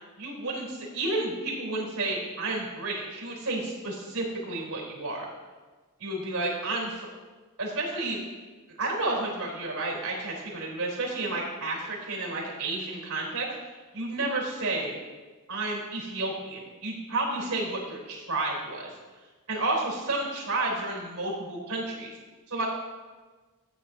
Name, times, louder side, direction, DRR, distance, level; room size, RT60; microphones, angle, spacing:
voice 1, 0.2-5.3 6.0-7.1 7.6-8.2 8.8-13.5 13.9-15.0 15.5-18.9 19.5-22.1 22.5-22.7, right 2 dB, 90° right, -1 dB, 3.7 m, -31 dB
14.5 x 8.9 x 2.8 m, 1.3 s
head